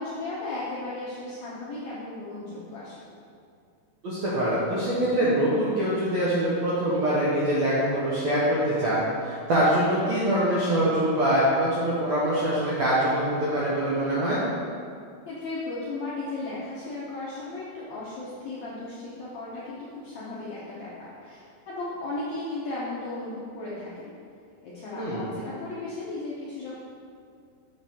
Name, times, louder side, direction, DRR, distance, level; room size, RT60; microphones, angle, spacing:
voice 1, 0.0-2.9 15.3-24.1 24.6-26.7, left 2 dB, 75° left, -8 dB, 1.6 m, -35 dB
voice 2, 4.0-14.4 25.0-25.2, right 1 dB, 75° right, -8 dB, 1.6 m, -24 dB
7.0 x 6.7 x 3.6 m, 2.4 s
omnidirectional pair, 4.5 m